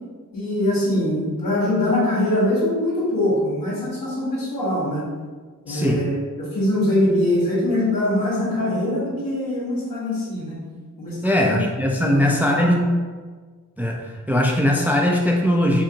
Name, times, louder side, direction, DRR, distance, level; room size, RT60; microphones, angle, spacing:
voice 1, 0.3-5.1 5.6-10.6 11.0-11.6 12.0-12.8, left 1 dB, 75° left, -7 dB, 1.2 m, -23 dB
voice 2, 5.7-6.0 11.2-12.9 13.8-15.8, left 1 dB, 5° right, 1 dB, 0.3 m, -20 dB
2.7 x 2.5 x 2.7 m, 1.4 s
cardioid pair, 40°, 35 cm